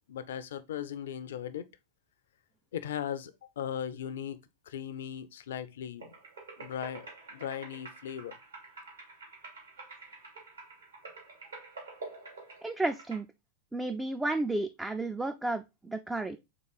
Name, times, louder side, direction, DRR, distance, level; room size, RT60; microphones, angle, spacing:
voice 1, 0.1-1.7 2.7-4.4 4.7-6.1 6.6-7.0 7.3-8.3, left 9 dB, 60° left, 0.4 m, -38 dB
sound 1, 6.0-13.2, right 3 dB, 75° right, 1.9 m, -48 dB
voice 2, 12.6-13.3 13.7-16.4, right 2 dB, 5° right, 0.3 m, -32 dB
3.7 x 3.4 x 3.9 m
figure-of-eight pair, 90°, 0 cm